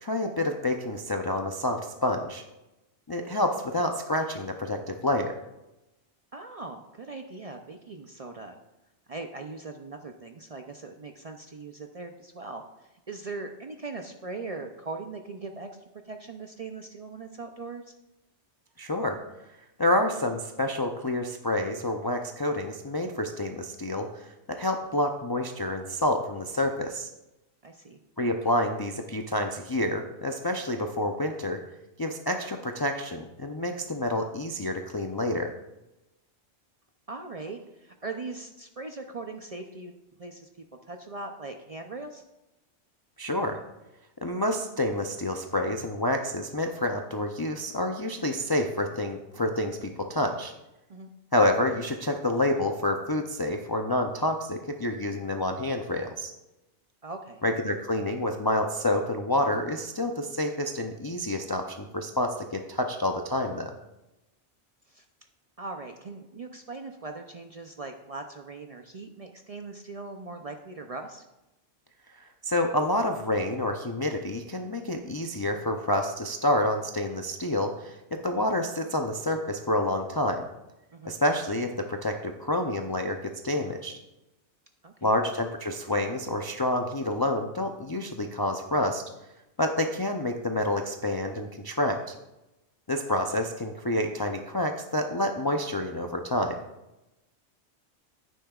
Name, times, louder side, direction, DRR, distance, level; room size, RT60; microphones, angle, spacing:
voice 1, 0.0-2.4 3.1-5.4 18.8-19.2 19.8-27.1 28.2-31.6 32.0-35.5 43.2-43.6 44.2-50.5 51.3-56.3 57.4-63.7 72.2-80.4 81.0-84.0 85.0-89.0 89.6-92.1 92.9-96.6, left 1 dB, 35° left, 3 dB, 0.4 m, -28 dB
voice 2, 6.3-8.6 9.1-15.7 16.0-17.8 27.6-28.0 37.1-42.2 50.9-51.1 57.0-57.4 64.9-65.0 65.6-71.2 80.9-81.2 84.8-85.1, right 3 dB, 45° right, 5 dB, 0.5 m, -40 dB
10.5 x 9.2 x 2.4 m, 0.96 s
omnidirectional pair, 1.2 m